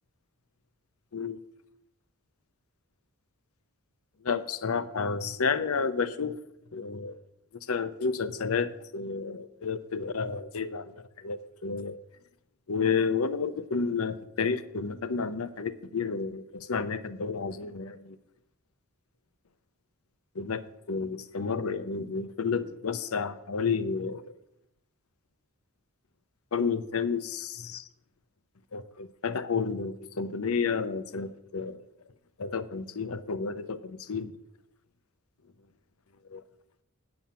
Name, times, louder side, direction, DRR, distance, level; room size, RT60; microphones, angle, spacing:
voice 1, 4.2-6.4 6.7-7.2 7.7-10.9 11.2-12.0 12.7-18.2 20.3-24.3 26.5-27.9 28.7-31.8 32.4-34.3 36.3-36.4, left 5 dB, 80° left, 14 dB, 0.7 m, -31 dB
8.8 x 7.7 x 6.9 m, 0.80 s
head